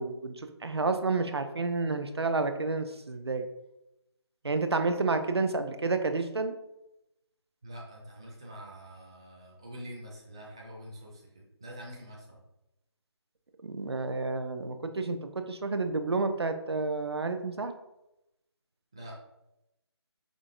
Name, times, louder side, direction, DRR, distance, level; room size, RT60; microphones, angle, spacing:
voice 1, 0.0-3.5 4.4-6.5 13.6-17.7, right 3 dB, 65° right, 8 dB, 0.5 m, -30 dB
voice 2, 7.6-12.4 18.9-19.2, equal, 10° right, -4 dB, 0.3 m, -45 dB
5.0 x 3.6 x 2.5 m, 0.90 s
figure-of-eight pair, 155°, 14 cm